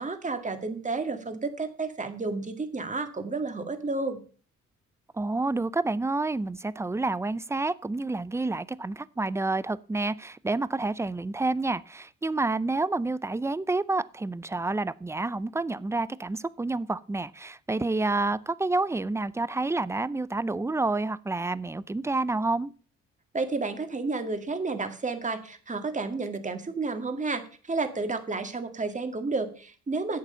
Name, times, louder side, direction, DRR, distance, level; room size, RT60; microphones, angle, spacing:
voice 1, 0.0-4.2 23.3-30.2, right 3 dB, 25° right, 8 dB, 1.9 m, -31 dB
voice 2, 5.1-22.7, right 2 dB, 10° right, 18 dB, 0.5 m, -29 dB
11.5 x 8.1 x 5.6 m, 0.41 s
cardioid pair, 90°, 30 cm